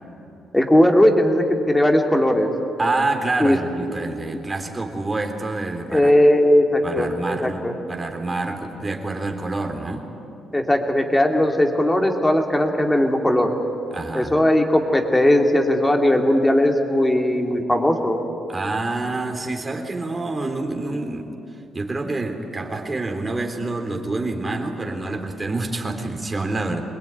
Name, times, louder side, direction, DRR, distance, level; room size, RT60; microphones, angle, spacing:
voice 1, 0.5-2.5 3.4-3.6 5.9-7.7 10.5-13.5 14.1-18.2, left 1 dB, 10° left, 3 dB, 2.8 m, -18 dB
voice 2, 2.8-6.1 6.8-10.1 13.9-14.3 18.5-26.8, right 2 dB, 25° right, 4 dB, 3.3 m, -27 dB
23.5 x 20.5 x 9.4 m, 2.9 s
cardioid pair, 90°, 0 cm